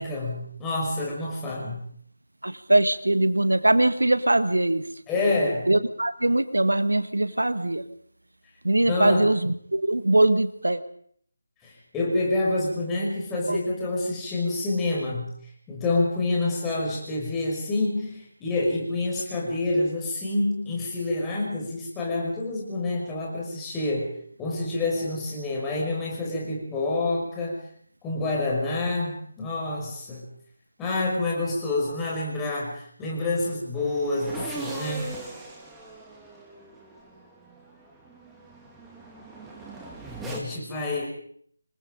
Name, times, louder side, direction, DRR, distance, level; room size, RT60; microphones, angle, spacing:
voice 1, 0.0-1.8 5.1-5.7 8.8-9.3 11.6-15.3 15.7-24.1 24.4-27.6 28.0-30.3 30.8-35.1 40.2-41.0, left 2 dB, 10° left, -3 dB, 5.9 m, -27 dB
voice 2, 2.4-4.9 5.7-7.9 8.6-10.8 13.5-13.6, right 1 dB, 75° right, 12 dB, 1.5 m, -22 dB
sound 1, 33.7-40.4, right 2 dB, 5° right, 2.9 m, -40 dB
27.5 x 21.5 x 5.3 m, 0.62 s
figure-of-eight pair, 155°, 0 cm